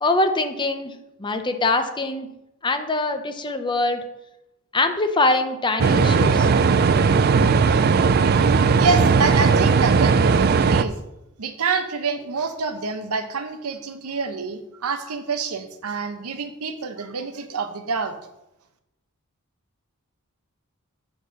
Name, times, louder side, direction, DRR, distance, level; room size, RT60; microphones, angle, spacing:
voice 1, 0.0-2.3 2.6-4.0 4.7-6.5, left 2 dB, 20° left, 7 dB, 0.6 m, -23 dB
sound 1, 5.8-10.8, right 5 dB, 45° right, 0.3 m, -17 dB
voice 2, 8.8-11.0 11.4-18.1, right 4 dB, 80° right, 8 dB, 0.8 m, -27 dB
7.1 x 4.3 x 6.3 m, 0.89 s
head